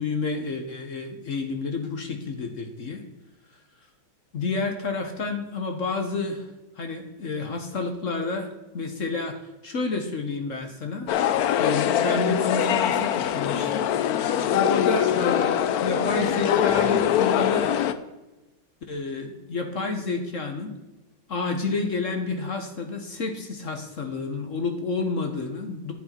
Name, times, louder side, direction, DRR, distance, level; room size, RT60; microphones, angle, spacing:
voice 1, 0.0-3.0 4.3-6.5 6.8-8.5 8.7-9.4 9.6-11.1 11.6-13.9 14.5-17.8 18.9-20.7 21.3-25.9, left 3 dB, 50° left, 5 dB, 1.1 m, -29 dB
sound 1, 11.1-17.9, left 10 dB, 75° left, 0.8 m, -23 dB
9.8 x 8.4 x 4.4 m, 1.1 s
omnidirectional pair, 2.2 m